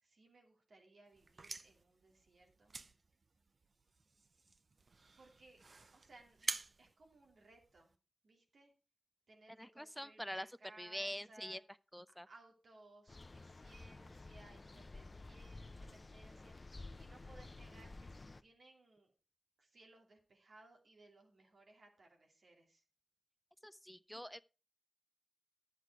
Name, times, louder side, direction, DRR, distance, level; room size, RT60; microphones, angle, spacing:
voice 1, 0.0-2.7 5.2-5.6 5.9-7.9 8.2-8.7 9.3-11.6 12.3-19.1 19.6-22.8, right 2 dB, 85° right, 2.7 m, -63 dB
sound 1, 1.1-8.0, right 3 dB, 65° right, 0.7 m, -48 dB
voice 2, 9.6-10.5 10.8-11.6 11.9-12.3 23.6-24.4, equal, 5° left, 0.5 m, -45 dB
sound 2, 13.1-18.4, left 2 dB, 45° left, 0.6 m, -52 dB
11.0 x 8.3 x 4.6 m
cardioid pair, 50°, 0 cm